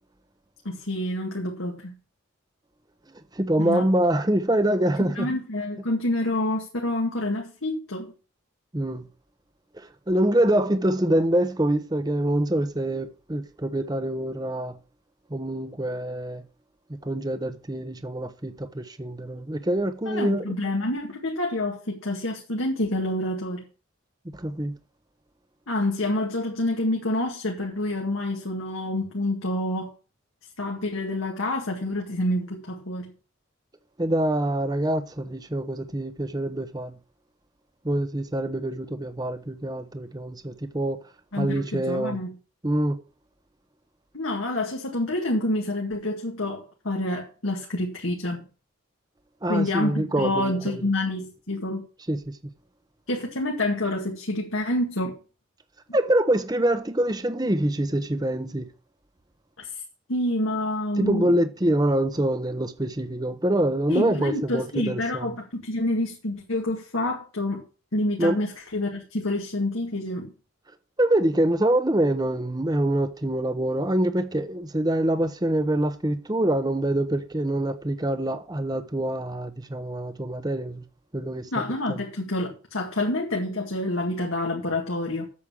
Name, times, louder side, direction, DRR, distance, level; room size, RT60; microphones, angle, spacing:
voice 1, 0.6-1.9 3.6-3.9 5.0-8.1 20.1-23.6 25.7-29.9 30.6-33.1 41.3-42.3 44.1-48.5 49.5-51.9 53.1-55.2 59.6-59.8 60.1-61.3 63.9-67.6 67.9-70.3 81.5-85.3, left 1 dB, 85° left, 2.0 m, -28 dB
voice 2, 3.3-5.3 8.7-9.0 9.7-14.8 15.3-16.4 17.0-20.6 24.3-24.7 34.0-37.0 37.8-41.0 41.4-42.2 42.6-43.0 49.4-50.8 52.1-52.4 55.9-58.7 61.0-65.3 68.2-68.4 71.0-80.8 81.1-81.5 81.9-82.0, right 1 dB, 20° right, 0.8 m, -25 dB
8.5 x 7.4 x 6.2 m
head